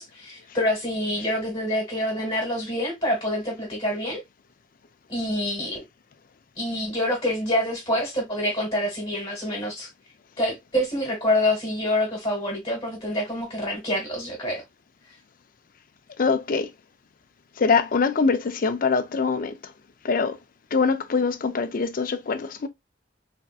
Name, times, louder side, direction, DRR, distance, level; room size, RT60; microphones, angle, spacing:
voice 1, 0.0-4.2 5.1-5.8 6.6-9.9 10.4-14.6, left 1 dB, 30° left, 1.6 m, -26 dB
voice 2, 16.2-16.7 17.6-19.5 20.0-20.4 20.7-22.7, left 5 dB, 50° left, 0.5 m, -23 dB
3.4 x 2.6 x 2.3 m
head